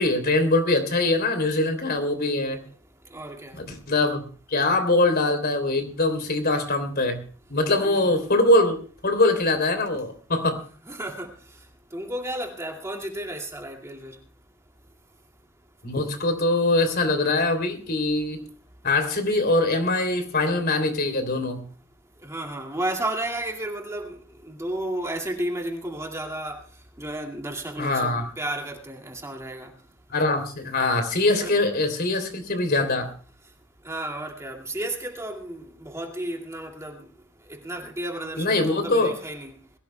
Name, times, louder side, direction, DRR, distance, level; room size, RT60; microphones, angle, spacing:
voice 1, 0.0-2.6 3.6-7.2 7.5-10.6 15.8-18.4 18.8-21.6 27.8-28.2 30.1-33.1 38.4-39.1, left 2 dB, 50° left, 3.1 m, -23 dB
voice 2, 3.1-3.6 7.7-8.1 10.9-11.3 11.9-14.2 22.2-24.2 24.4-26.6 27.0-29.7 31.4-31.5 33.8-37.0 37.5-39.6, right 1 dB, 15° right, 2.2 m, -32 dB
22.0 x 16.5 x 2.2 m
head